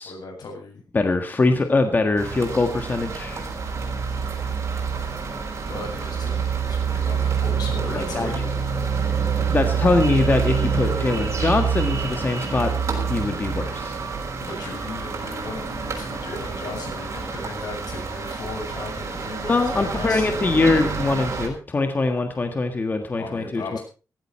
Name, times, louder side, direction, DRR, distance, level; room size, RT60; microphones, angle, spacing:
voice 1, 0.1-0.8 5.7-8.5 14.4-20.5 22.0-22.1 23.2-23.8, left 3 dB, 85° left, 2 dB, 7.9 m, -36 dB
voice 2, 0.9-3.5 7.9-8.3 9.5-12.7 13.1-14.0 19.4-23.8, left 3 dB, 25° left, 6 dB, 1.6 m, -23 dB
sound 1, 2.2-21.5, right 6 dB, 45° right, 5.5 m, -27 dB
16.0 x 15.5 x 4.4 m, 0.37 s
wide cardioid pair, 170°, 7 cm